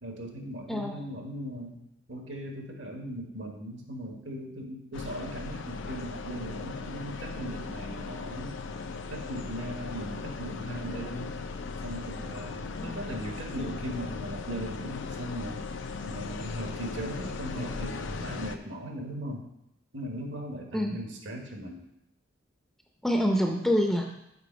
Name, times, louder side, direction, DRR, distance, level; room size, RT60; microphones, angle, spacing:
voice 1, 0.0-1.8 2.1-8.5 9.1-11.4 11.8-15.6 16.0-19.4 19.9-21.8, equal, 70° right, 1 dB, 1.3 m, -38 dB
voice 2, 0.7-1.0 20.7-21.1 23.0-24.0, equal, ahead, 1 dB, 0.6 m, -26 dB
sound 1, 4.9-18.6, left 4 dB, 65° left, 0.5 m, -38 dB
6.8 x 3.9 x 5.1 m, 0.84 s
head